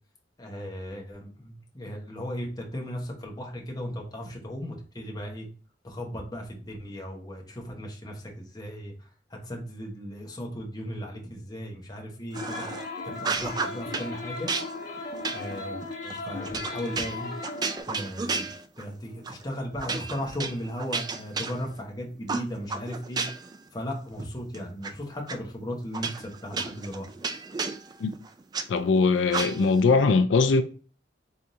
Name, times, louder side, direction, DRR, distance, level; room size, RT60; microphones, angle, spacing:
voice 1, 0.4-5.5 5.8-12.7 13.2-14.5 15.3-17.3 17.9-23.2 23.7-27.1, equal, 20° left, 1.0 m, -36 dB
sound 1, 12.3-17.8, left 3 dB, 55° left, 1.0 m, -37 dB
sound 2, 12.3-12.9 13.2-14.1 14.5-18.9 19.2-19.4 19.8-21.9 22.3-23.6 23.9-24.9 25.3-25.4 25.9-28.7 29.3-29.8, right 4 dB, 20° right, 0.3 m, -33 dB
voice 2, 28.7-30.6, left 4 dB, 85° left, 0.4 m, -21 dB
4.3 x 3.6 x 2.6 m
head